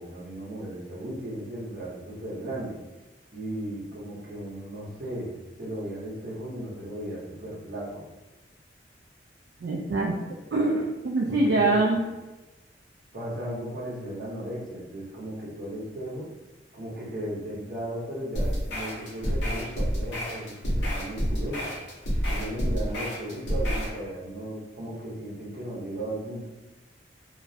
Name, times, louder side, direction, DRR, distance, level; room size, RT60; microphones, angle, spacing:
voice 1, 0.0-2.7 3.3-5.3 5.6-8.0 11.3-11.9 13.1-16.3 16.7-21.7 22.3-26.5, right 1 dB, 50° right, -6 dB, 0.8 m, -36 dB
voice 2, 9.6-10.2 10.5-12.0, right 2 dB, 65° right, -3 dB, 0.3 m, -24 dB
sound 1, 18.3-24.0, equal, 75° left, 0.7 m, -29 dB
2.3 x 2.0 x 2.6 m, 1.1 s
head